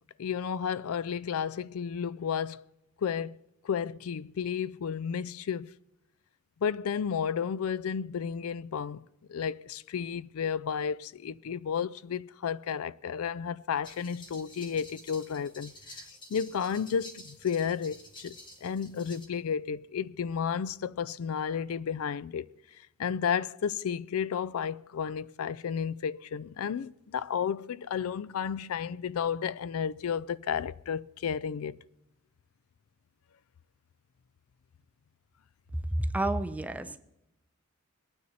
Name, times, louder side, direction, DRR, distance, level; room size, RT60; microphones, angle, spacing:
voice 1, 0.2-2.6 3.0-3.4 3.6-5.7 6.6-16.0 16.3-22.5 23.0-31.8, left 7 dB, 75° left, 0.4 m, -32 dB
sound 1, 13.8-19.3, left 1 dB, 20° left, 1.7 m, -50 dB
voice 2, 35.9-37.0, right 1 dB, 5° right, 0.6 m, -30 dB
22.0 x 9.5 x 4.2 m
head